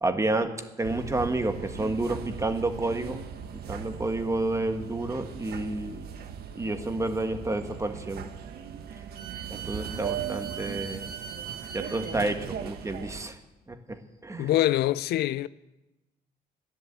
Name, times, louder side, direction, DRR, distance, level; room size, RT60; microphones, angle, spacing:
voice 1, 0.0-3.2 3.7-6.0 6.5-8.3 9.5-11.1 11.7-13.4 13.7-14.5, right 2 dB, 20° right, 1.5 m, -30 dB
sound 1, 0.8-13.3, right 8 dB, 75° right, 1.3 m, -38 dB
voice 2, 14.4-15.5, left 14 dB, 85° left, 0.5 m, -24 dB
13.5 x 10.5 x 8.2 m
cardioid pair, 100°, 16 cm